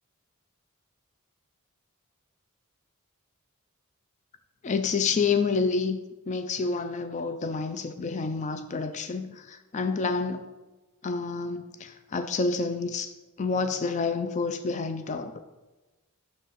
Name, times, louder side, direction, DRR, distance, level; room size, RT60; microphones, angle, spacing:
voice 1, 4.6-6.0 6.3-10.5 11.0-13.1 13.4-15.4, left 4 dB, 35° left, 9 dB, 0.3 m, -28 dB
10.0 x 6.3 x 4.0 m, 1.2 s
head